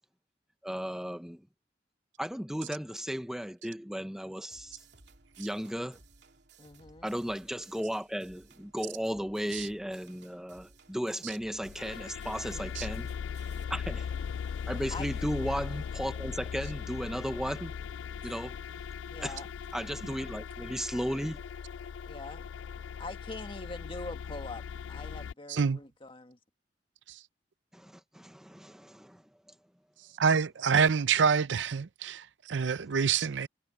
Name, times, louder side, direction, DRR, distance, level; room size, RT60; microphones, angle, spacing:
voice 1, 0.6-1.4 2.2-4.8 5.4-6.0 7.0-13.1 13.7-14.1 14.7-17.7 18.2-18.6 19.2-19.4 19.7-21.4 27.7-29.2, equal, 5° right, 0.8 m, -35 dB
sound 1, 4.5-13.6, right 4 dB, 65° right, 3.0 m, -59 dB
voice 2, 6.6-7.1 12.5-12.7 14.9-15.1 19.1-19.5 22.1-22.4 22.8-26.4, left 2 dB, 30° left, 1.9 m, -43 dB
sound 2, 11.6-25.3, left 7 dB, 90° left, 0.3 m, -39 dB
voice 3, 30.2-33.5, right 6 dB, 85° right, 0.5 m, -26 dB
head